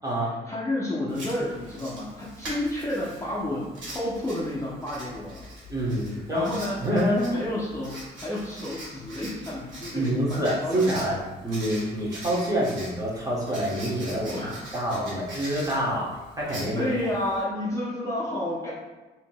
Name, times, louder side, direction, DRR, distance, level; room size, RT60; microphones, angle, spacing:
voice 1, 0.2-5.5 6.1-7.0 7.3-11.2 14.3-14.6 16.7-18.7, left 1 dB, 15° left, -7 dB, 0.6 m, -31 dB
Writing, 1.1-17.4, right 1 dB, 70° right, 1.4 m, -43 dB
voice 2, 5.7-6.5 6.8-7.4 9.9-11.2 11.4-14.3 14.7-16.1 16.4-16.9, equal, 15° right, -6 dB, 1.0 m, -26 dB
3.5 x 2.8 x 2.2 m, 1.2 s
cardioid pair, 90°, 20 cm